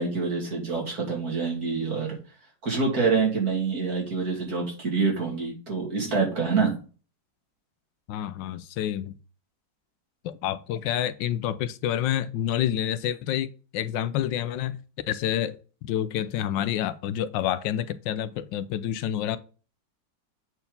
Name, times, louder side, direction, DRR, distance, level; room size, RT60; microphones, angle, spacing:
voice 1, 0.0-2.2 2.6-6.8, right 4 dB, 55° right, 3.1 m, -26 dB
voice 2, 8.1-9.1 10.2-14.8 15.1-15.6 15.8-19.4, left 11 dB, 80° left, 1.3 m, -28 dB
8.1 x 4.6 x 5.2 m
omnidirectional pair, 2.0 m